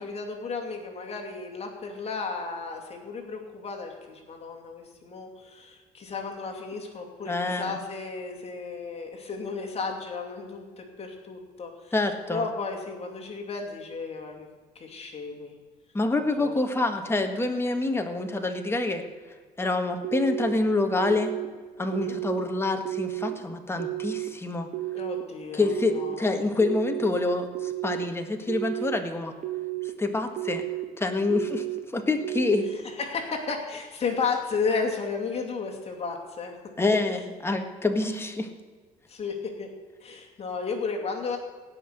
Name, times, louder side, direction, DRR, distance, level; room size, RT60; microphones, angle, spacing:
voice 1, 0.0-11.9 12.3-14.5 14.7-15.5 16.4-16.5 21.8-22.1 24.9-26.3 32.7-36.6 39.1-39.7 40.0-41.4, left 4 dB, 35° left, 1 dB, 2.5 m, -33 dB
voice 2, 7.3-7.8 11.9-12.5 15.9-19.0 19.6-21.3 21.8-24.7 25.5-29.3 30.0-30.6 31.0-32.7 36.8-38.5, left 2 dB, 15° left, 4 dB, 1.7 m, -27 dB
sound 1, 20.0-20.5 21.0-21.5 21.9-22.4 22.8-23.3 23.8-24.3 24.7-25.2 25.7-26.1 26.6-27.1 27.5-28.0 28.5-29.0 29.4-29.9 30.4-30.8 31.3-31.8 32.2-32.7, right 18 dB, 45° right, 1.4 m, -32 dB
17.0 x 5.9 x 8.0 m, 1.5 s
cardioid pair, 110°, 17 cm